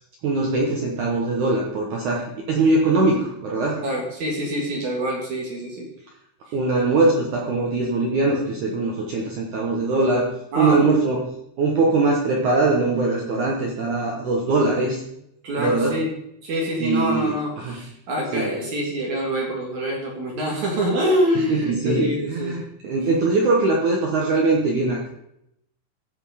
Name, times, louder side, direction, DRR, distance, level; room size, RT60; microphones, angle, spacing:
voice 1, 0.2-3.8 6.5-10.3 10.6-11.2 11.6-15.0 15.6-16.0 16.8-17.8 18.3-18.5 21.4-25.1, right 3 dB, 75° right, -1 dB, 1.8 m, -21 dB
voice 2, 3.8-5.9 10.5-11.0 15.4-16.1 16.4-22.6, equal, 55° right, -1 dB, 2.4 m, -25 dB
15.5 x 5.4 x 5.0 m, 0.78 s
omnidirectional pair, 5.4 m